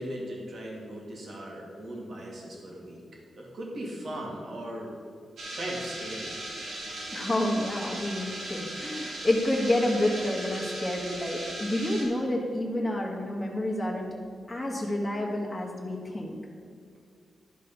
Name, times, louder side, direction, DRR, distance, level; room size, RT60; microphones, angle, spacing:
voice 1, 0.0-3.0 3.4-4.9 5.6-6.4, right 1 dB, 60° right, -2 dB, 2.3 m, -38 dB
sound 1, 5.4-12.0, right 1 dB, 80° right, 2.6 m, -38 dB
voice 2, 7.1-14.1 14.5-16.4, left 1 dB, 10° left, -3 dB, 1.5 m, -29 dB
11.5 x 5.3 x 5.4 m, 2.3 s
cardioid pair, 105°, 0 cm